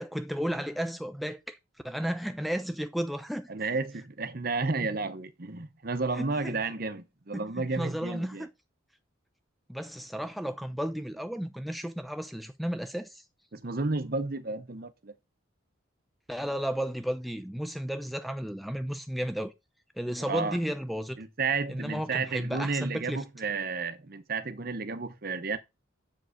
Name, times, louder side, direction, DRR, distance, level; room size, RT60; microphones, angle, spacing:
voice 1, 0.0-1.6 1.8-3.5 6.2-6.5 7.3-7.4 7.8-8.5 9.7-13.2 16.3-19.5 20.0-21.2 21.7-23.2, equal, ahead, 0.5 m, -33 dB
voice 2, 3.5-8.5 13.5-15.1 20.2-20.6 21.2-25.6, right 4 dB, 45° right, 0.8 m, -32 dB
7.5 x 4.9 x 5.0 m
head